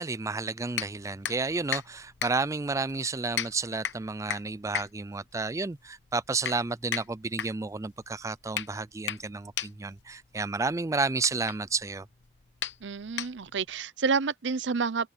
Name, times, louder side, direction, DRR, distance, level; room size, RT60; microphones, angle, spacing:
voice 1, 0.0-12.1, right 3 dB, 15° right, 0.4 m, -31 dB
sound 1, 0.7-13.7, left 9 dB, 80° left, 1.0 m, -38 dB
voice 2, 12.8-15.1, right 5 dB, 85° right, 0.7 m, -29 dB
head